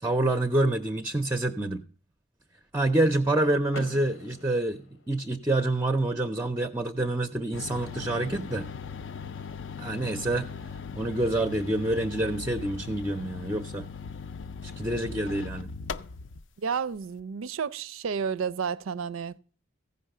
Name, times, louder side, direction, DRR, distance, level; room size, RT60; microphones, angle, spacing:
voice 1, 0.0-1.8 2.7-8.7 9.8-10.5 10.9-13.9 14.6-15.7, right 2 dB, 10° right, 0.4 m, -27 dB
Car / Door, 3.7-5.6, left 3 dB, 80° left, 0.9 m, -45 dB
sound 1, 7.5-16.4, left 5 dB, 60° left, 0.4 m, -39 dB
voice 2, 16.6-19.4, right 6 dB, 85° right, 0.4 m, -31 dB
15.0 x 5.3 x 6.5 m
head